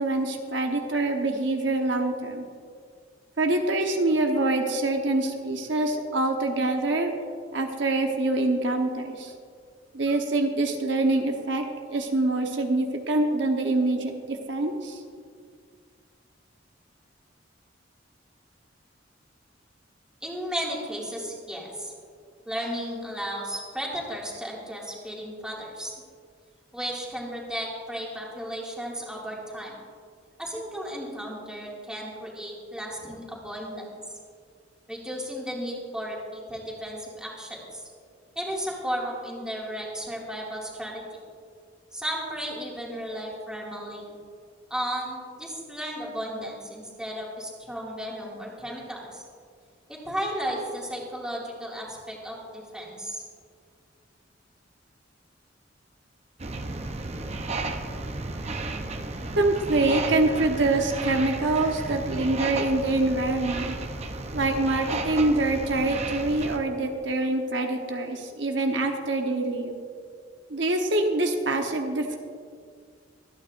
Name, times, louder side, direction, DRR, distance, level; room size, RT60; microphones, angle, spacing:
voice 1, 0.0-2.5 3.4-7.1 7.5-9.3 9.9-15.0 59.4-63.8 64.3-69.8 70.5-72.2, right 2 dB, 70° right, 3 dB, 1.0 m, -25 dB
voice 2, 20.2-21.9 22.5-25.9 26.7-29.8 30.4-33.9 34.9-37.8 38.4-41.2 41.9-44.2 44.7-49.2 49.9-53.2, equal, 5° right, -4 dB, 2.2 m, -34 dB
sound 1, 56.4-66.6, right 2 dB, 35° right, 0.7 m, -33 dB
24.0 x 9.3 x 2.6 m, 2.1 s
head